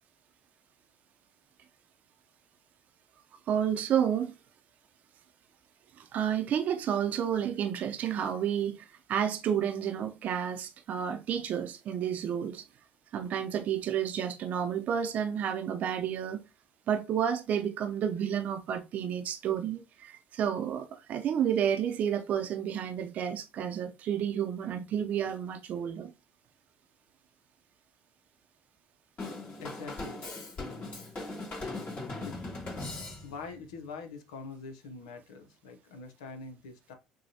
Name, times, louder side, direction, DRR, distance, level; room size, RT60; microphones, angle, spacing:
voice 1, 3.5-4.3 6.0-12.7 13.1-16.4 16.9-26.1, right 9 dB, 55° right, 0.6 m, -31 dB
Drum kit / Drum, 29.2-33.5, left 2 dB, 45° left, 2.7 m, -39 dB
voice 2, 29.6-30.3 32.2-32.4 33.2-36.9, left 4 dB, 80° left, 0.8 m, -44 dB
6.3 x 2.3 x 2.8 m
hypercardioid pair, 60°, 3 cm